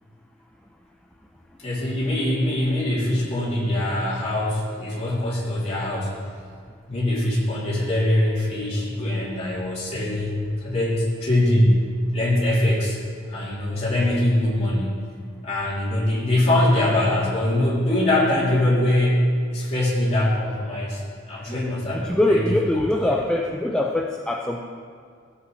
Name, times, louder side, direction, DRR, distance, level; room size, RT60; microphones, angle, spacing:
voice 1, 1.6-6.2 6.9-11.8 12.1-13.0 13.3-15.0 15.4-21.0 21.3-22.4 23.0-23.2, left 1 dB, 35° left, -7 dB, 3.1 m, -22 dB
voice 2, 21.5-24.6, left 1 dB, 5° left, -1 dB, 0.5 m, -23 dB
15.5 x 8.1 x 3.2 m, 2.2 s
head